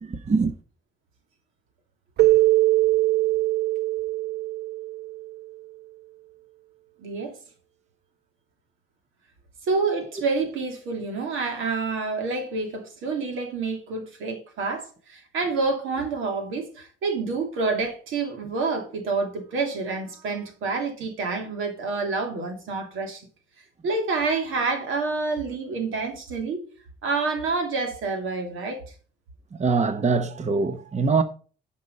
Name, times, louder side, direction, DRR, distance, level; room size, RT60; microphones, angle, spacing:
voice 1, 0.0-0.5 29.5-31.2, right 4 dB, 35° right, 1.0 m, -23 dB
Keyboard (musical), 2.2-5.4, right 17 dB, 55° right, 0.5 m, -22 dB
voice 2, 7.0-7.4 9.6-23.2 23.8-26.7 27.0-28.8, right 4 dB, 85° right, 2.8 m, -28 dB
10.5 x 5.6 x 5.3 m
cardioid pair, 90°, 20 cm